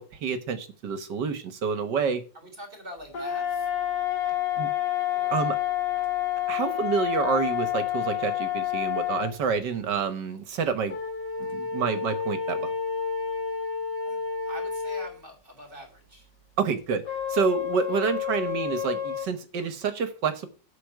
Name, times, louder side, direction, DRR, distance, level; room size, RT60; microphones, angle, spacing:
voice 1, 0.0-2.2 4.6-4.7 5.3-5.6 6.5-11.0 11.5-12.7 16.6-17.0 17.3-20.5, right 6 dB, 70° right, 11 dB, 1.7 m, -28 dB
voice 2, 2.3-3.7 5.1-5.4 14.0-14.2 14.4-16.3 17.9-18.2, right 1 dB, 30° right, 4 dB, 3.6 m, -44 dB
sound 1, 3.1-9.3 10.9-15.1 17.1-19.3, left 9 dB, 65° left, 2.4 m, -29 dB
8.4 x 6.1 x 8.1 m, 0.36 s
omnidirectional pair, 2.0 m